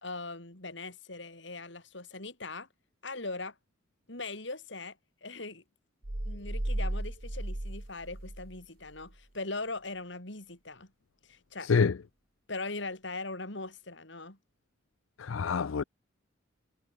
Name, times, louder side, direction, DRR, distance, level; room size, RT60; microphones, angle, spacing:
voice 1, 0.0-2.7 3.0-3.6 4.1-5.6 6.2-10.9 11.2-11.7 12.5-14.4, left 3 dB, 65° left, 4.1 m, -40 dB
sound 1, 6.0-8.6 8.9-9.1, right 1 dB, 50° right, 1.7 m, -35 dB
voice 2, 15.2-15.8, left 5 dB, 85° left, 0.5 m, -26 dB
head